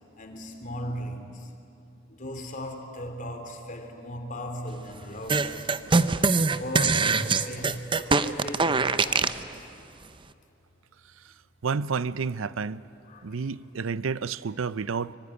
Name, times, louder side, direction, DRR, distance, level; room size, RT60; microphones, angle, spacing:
voice 1, 0.2-1.5 2.1-5.8 6.5-9.8 13.0-13.8, equal, 40° left, 2.9 m, -38 dB
massive mumbling fart, 5.3-9.4, right 4 dB, 25° right, 0.6 m, -23 dB
voice 2, 11.6-12.8 13.2-15.1, right 5 dB, 80° right, 0.6 m, -30 dB
24.5 x 24.0 x 9.8 m
head